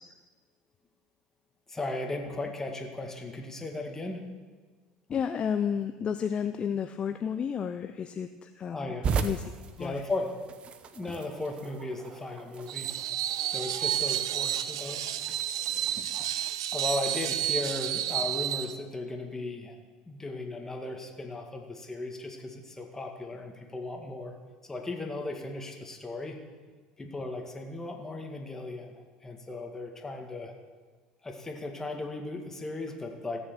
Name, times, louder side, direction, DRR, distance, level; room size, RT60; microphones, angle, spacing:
voice 1, 1.7-4.2 8.7-9.1 9.8-10.3 10.8-12.9 13.5-15.1 16.7-19.8 20.1-24.4 24.6-26.4 27.0-28.9 29.2-30.5 31.2-33.4, left 2 dB, 15° left, 3 dB, 2.1 m, -36 dB
voice 2, 5.1-8.9 9.2-9.5 9.8-10.0 11.1-11.2, left 7 dB, 40° left, 9 dB, 0.5 m, -31 dB
sound 1, 9.0-16.6, right 5 dB, 40° right, 0.9 m, -38 dB
Screech, 12.7-18.7, right 12 dB, 90° right, 0.5 m, -31 dB
15.5 x 7.1 x 7.0 m, 1.4 s
supercardioid pair, 90°, 3 cm